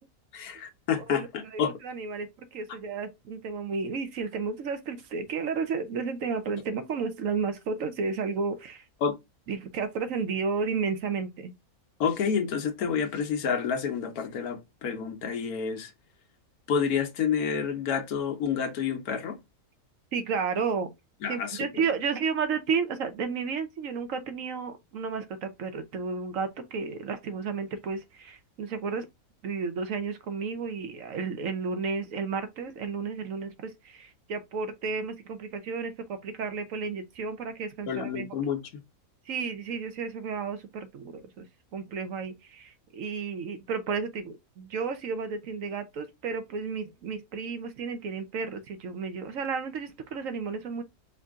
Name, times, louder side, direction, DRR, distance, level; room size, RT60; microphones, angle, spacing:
voice 1, 0.3-1.7 9.0-9.2 12.0-15.9 16.7-19.4 21.2-21.8 37.9-38.6, left 7 dB, 90° left, 1.3 m, -29 dB
voice 2, 1.1-8.8 9.5-11.5 20.1-20.9 21.3-29.1 29.4-38.3 39.3-41.5 41.7-50.8, right 5 dB, 70° right, 1.1 m, -32 dB
4.7 x 2.6 x 3.5 m
omnidirectional pair, 1.5 m